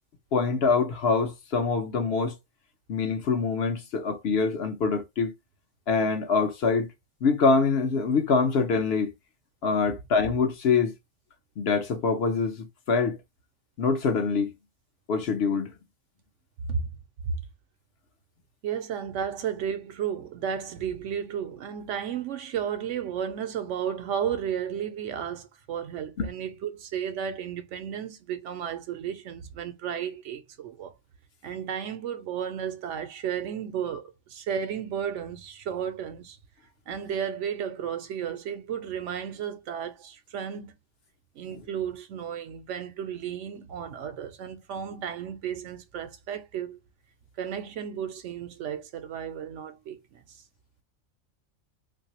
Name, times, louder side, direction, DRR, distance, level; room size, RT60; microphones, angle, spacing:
voice 1, 0.3-2.3 2.9-5.3 5.9-6.9 7.2-9.1 9.6-10.9 11.6-13.2 13.8-14.5 15.1-15.7 26.2-26.3, left 4 dB, 60° left, 0.8 m, -24 dB
voice 2, 18.6-30.9 31.4-36.4 36.9-40.7 41.4-46.8 47.4-50.2, right 8 dB, 75° right, 0.9 m, -33 dB
3.2 x 2.6 x 2.8 m
omnidirectional pair, 1.3 m